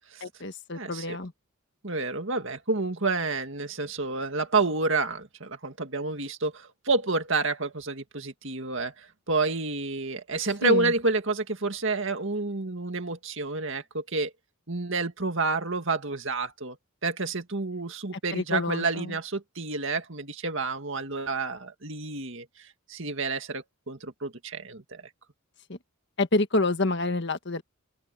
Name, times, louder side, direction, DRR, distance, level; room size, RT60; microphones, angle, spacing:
voice 1, 0.2-1.3 10.6-10.9 18.3-19.1 25.7-25.8 26.2-27.6, left 2 dB, 50° left, 1.7 m, -28 dB
voice 2, 0.7-1.2 1.8-14.3 14.7-16.8 17.0-25.0, right 3 dB, 55° right, 2.2 m, -29 dB
open air
head